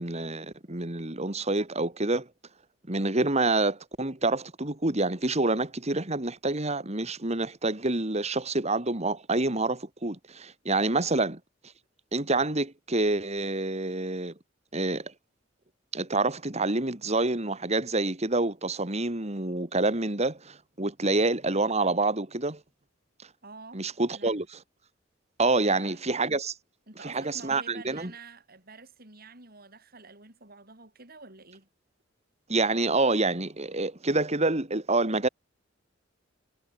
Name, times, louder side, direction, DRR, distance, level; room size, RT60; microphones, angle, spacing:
voice 1, 0.0-2.3 2.9-11.4 12.1-14.3 14.7-15.1 15.9-22.6 23.2-23.3 23.7-24.4 25.4-26.5 27.0-28.1 32.5-35.3, right 2 dB, 35° right, 2.8 m, -27 dB
voice 2, 10.9-11.3 23.4-24.3 25.6-26.0 26.9-31.7, right 3 dB, 50° right, 7.7 m, -49 dB
head